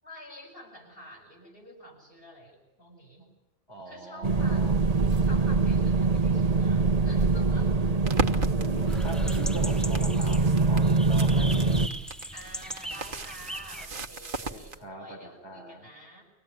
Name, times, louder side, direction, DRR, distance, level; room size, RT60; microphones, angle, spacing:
voice 1, 0.0-3.3 3.9-4.9 5.2-7.7 12.3-16.2, equal, 55° left, 0 dB, 7.6 m, -48 dB
voice 2, 3.7-4.8 8.2-11.9 14.5-15.9, right 1 dB, 85° left, 0 dB, 4.9 m, -42 dB
sound 1, 4.2-11.9, right 3 dB, 35° right, 1.2 m, -24 dB
sound 2, 8.0-14.8, right 3 dB, 50° right, 1.5 m, -36 dB
sound 3, 8.9-13.9, equal, ahead, 0.8 m, -40 dB
25.0 x 18.0 x 9.6 m, 0.95 s
omnidirectional pair, 1.1 m